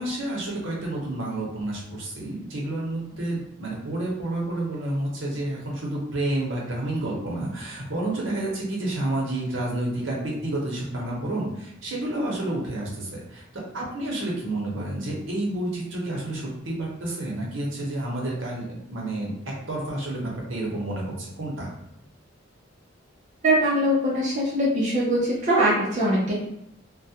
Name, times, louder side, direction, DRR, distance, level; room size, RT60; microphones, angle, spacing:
voice 1, 0.0-13.4 13.7-19.3 19.7-21.1 21.4-21.7, right 1 dB, 70° right, -3 dB, 0.8 m, -30 dB
voice 2, 23.4-26.3, right 1 dB, 40° right, -6 dB, 0.5 m, -22 dB
2.3 x 2.1 x 2.7 m, 0.80 s
head